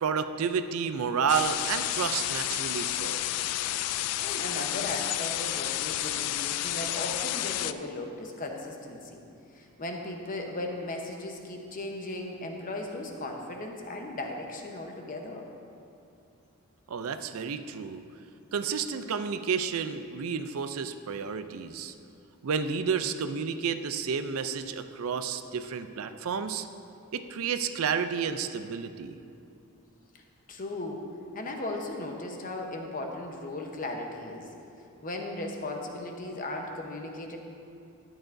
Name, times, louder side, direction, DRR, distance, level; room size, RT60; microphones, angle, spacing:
voice 1, 0.0-3.3 16.9-18.0 18.5-21.9 22.4-26.7 27.1-29.2, right 6 dB, 70° right, 9 dB, 0.4 m, -31 dB
sound 1, 1.3-7.7, left 13 dB, 90° left, 0.3 m, -31 dB
voice 2, 4.2-9.2 9.5-15.5 30.5-31.0 31.3-34.5 35.0-37.4, left 2 dB, 40° left, 2 dB, 0.9 m, -37 dB
12.5 x 10.0 x 2.6 m, 2.6 s
head